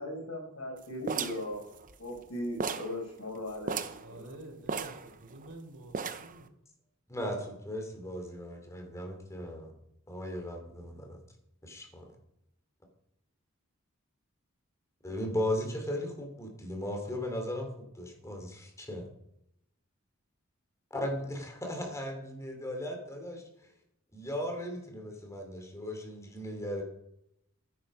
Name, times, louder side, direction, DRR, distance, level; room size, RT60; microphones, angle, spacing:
voice 1, 0.0-1.7 2.0-3.8 4.1-4.4, left 1 dB, 90° left, 5.0 m, -38 dB
sound 1, 1.1-2.3 2.6-3.0 3.3-3.4 3.6-4.1 4.7-5.5 5.9-6.4, right 5 dB, 40° right, 0.8 m, -35 dB
voice 2, 4.0-6.5, right 2 dB, 70° right, 3.8 m, -49 dB
voice 3, 7.1-9.7 10.1-11.2 11.6-12.1 15.0-17.7 17.9-19.0 20.9-23.4 24.1-26.8, left 1 dB, 15° left, 3.1 m, -37 dB
13.0 x 10.0 x 5.6 m
head